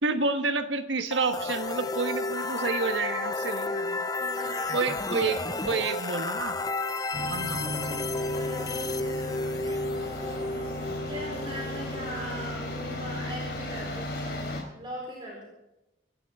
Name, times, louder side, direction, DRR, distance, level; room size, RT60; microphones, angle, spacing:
voice 1, 0.0-4.0 4.7-6.6 7.2-8.1, right 4 dB, 75° right, 8 dB, 1.4 m, -29 dB
sound 1, 1.1-12.9, left 3 dB, 20° left, 0.6 m, -32 dB
voice 2, 4.1-4.9 8.3-15.4, equal, 25° right, -4 dB, 4.4 m, -41 dB
sound 2, 7.1-14.6, left 1 dB, 55° left, 3.7 m, -35 dB
28.0 x 12.0 x 3.7 m, 0.95 s
head